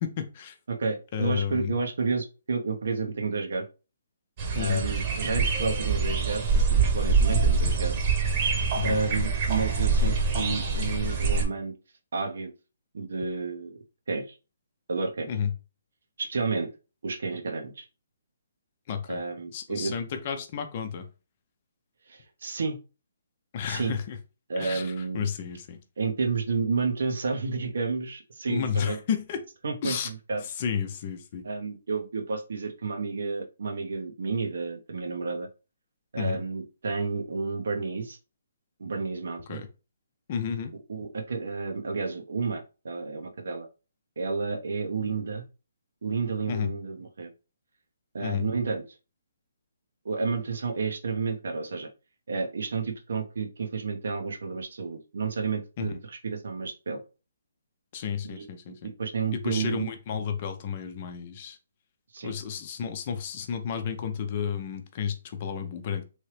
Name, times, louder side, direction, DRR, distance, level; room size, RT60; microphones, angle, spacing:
voice 1, 0.0-0.5 1.1-1.7 4.6-4.8 8.8-9.0 15.3-15.5 18.9-19.2 19.5-21.1 23.5-24.2 24.6-25.8 28.5-29.4 29.8-30.1 30.6-31.5 36.2-36.4 39.5-39.7 40.3-40.7 46.5-46.7 48.2-48.4 55.8-55.9 57.9-58.9 59.3-61.6 62.2-66.0, left 7 dB, 40° left, 0.6 m, -31 dB
voice 2, 0.7-3.7 4.5-7.9 8.8-11.7 12.1-12.5 12.9-13.8 14.1-14.2 14.9-15.3 16.2-16.7 17.0-17.9 19.1-19.9 22.1-22.8 23.6-23.9 24.5-25.3 26.0-29.0 29.6-30.4 31.4-35.5 36.1-38.2 38.8-39.6 40.9-43.7 44.2-45.5 46.0-47.3 48.1-48.8 50.0-51.9 52.3-57.0 58.2-58.5 58.8-59.9 62.1-62.3, right 4 dB, 70° right, 0.8 m, -31 dB
sound 1, 4.4-11.4, right 4 dB, 35° right, 1.1 m, -25 dB
3.1 x 2.7 x 3.2 m
hypercardioid pair, 145°, 0 cm